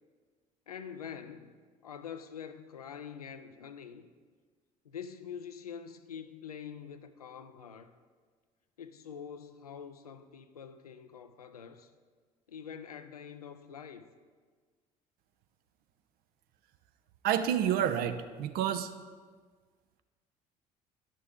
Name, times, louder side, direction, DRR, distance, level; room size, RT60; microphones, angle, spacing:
voice 1, 0.7-1.5 1.8-4.1 4.8-7.9 8.8-11.9 12.5-14.1, left 7 dB, 85° left, 10 dB, 0.4 m, -45 dB
voice 2, 17.2-18.9, right 9 dB, 55° right, 10 dB, 0.6 m, -29 dB
11.0 x 6.7 x 3.6 m, 1.5 s
figure-of-eight pair, 55°, 19 cm